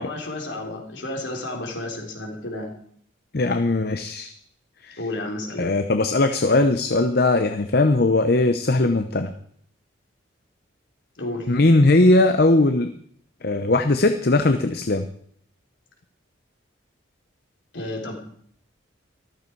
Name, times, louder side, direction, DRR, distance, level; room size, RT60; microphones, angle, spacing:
voice 1, 0.0-2.7 5.0-5.7 11.2-11.5 17.7-18.2, left 2 dB, 65° left, 1 dB, 3.7 m, -31 dB
voice 2, 3.3-4.3 4.8-5.0 5.6-9.3 11.5-12.9 13.4-15.1, left 2 dB, 50° left, 8 dB, 0.8 m, -19 dB
14.0 x 13.5 x 4.7 m, 0.65 s
head